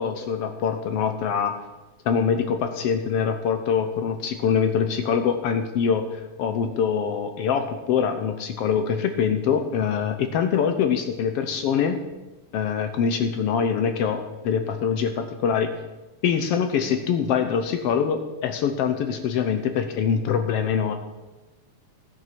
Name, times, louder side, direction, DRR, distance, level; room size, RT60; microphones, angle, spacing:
voice 1, 0.0-1.5 2.0-12.0 12.5-15.7 16.2-20.9, left 7 dB, 75° left, 7 dB, 1.5 m, -24 dB
14.0 x 7.7 x 5.9 m, 1.1 s
omnidirectional pair, 3.4 m